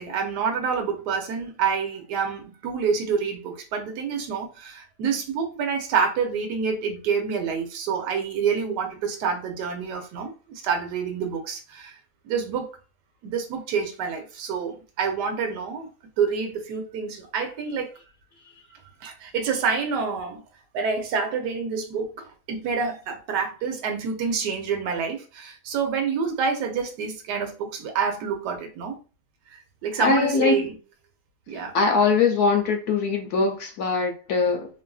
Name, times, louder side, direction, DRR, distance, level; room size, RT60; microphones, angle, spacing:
voice 1, 0.0-12.0 12.2-12.7 13.2-15.9 16.2-17.9 19.0-20.4 20.7-29.0 29.8-30.8 31.5-31.7, right 6 dB, 70° right, 1.2 m, -27 dB
voice 2, 30.0-30.7 31.7-34.7, left 4 dB, 70° left, 1.0 m, -22 dB
3.2 x 2.5 x 2.3 m
omnidirectional pair, 2.0 m